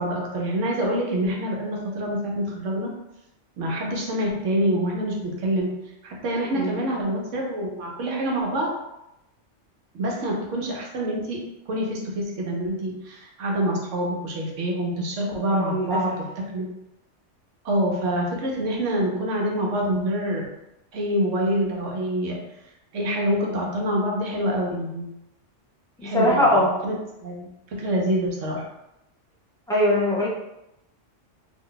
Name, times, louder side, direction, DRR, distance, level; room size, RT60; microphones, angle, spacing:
voice 1, 0.0-2.9 3.6-8.7 9.9-16.7 17.6-20.5 20.9-22.4 22.9-25.1 26.0-28.6, right 1 dB, 85° right, -1 dB, 1.1 m, -26 dB
voice 2, 15.5-16.2 26.0-26.8 29.7-30.3, left 1 dB, 5° left, -7 dB, 0.5 m, -21 dB
2.6 x 2.2 x 3.8 m, 0.88 s
omnidirectional pair, 1.3 m